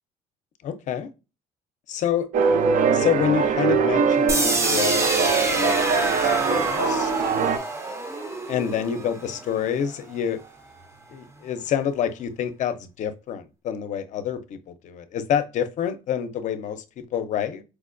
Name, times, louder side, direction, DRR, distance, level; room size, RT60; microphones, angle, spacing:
voice 1, 0.6-1.1 1.9-2.3 2.9-7.1 8.5-10.4 11.1-17.6, left 8 dB, 55° left, 0.5 m, -28 dB
sound 1, 2.3-7.6, right 5 dB, 65° right, 0.5 m, -22 dB
sound 2, 4.3-10.2, right 2 dB, 20° right, 0.5 m, -27 dB
4.6 x 2.2 x 2.5 m
cardioid pair, 120°, 15 cm